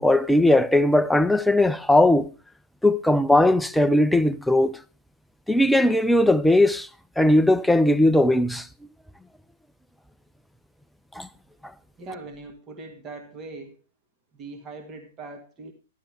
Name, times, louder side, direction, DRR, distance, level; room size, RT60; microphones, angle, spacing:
voice 1, 0.0-2.3 2.8-4.8 5.5-6.9 7.2-8.7 11.2-11.3, left 1 dB, ahead, 0.5 m, -19 dB
voice 2, 12.0-13.8 14.3-15.7, right 3 dB, 25° right, 1.8 m, -40 dB
12.5 x 11.0 x 3.4 m
figure-of-eight pair, 105°, 0 cm